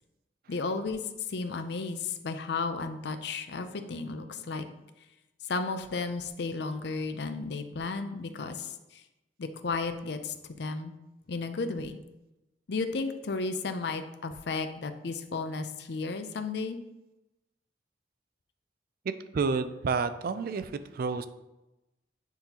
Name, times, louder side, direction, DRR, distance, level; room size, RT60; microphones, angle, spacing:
voice 1, 0.5-1.0 1.3-4.6 5.4-9.0 9.4-10.9 11.3-12.0 12.7-16.8, left 3 dB, 65° left, 9 dB, 0.5 m, -33 dB
voice 2, 19.3-21.3, right 4 dB, 55° right, 11 dB, 0.4 m, -30 dB
9.1 x 3.8 x 2.9 m, 0.97 s
head